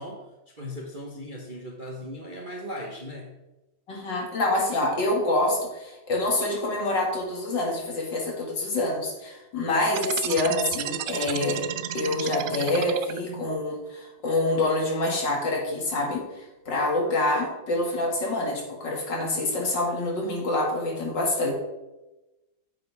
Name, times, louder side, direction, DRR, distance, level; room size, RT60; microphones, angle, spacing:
voice 1, 0.0-3.4, equal, 35° right, 0 dB, 0.8 m, -38 dB
voice 2, 3.9-11.6 11.9-21.5, left 2 dB, 60° left, -1 dB, 2.8 m, -26 dB
sound 1, 9.9-13.5, right 11 dB, 90° right, 0.8 m, -32 dB
9.4 x 7.7 x 3.5 m, 1.0 s
omnidirectional pair, 2.2 m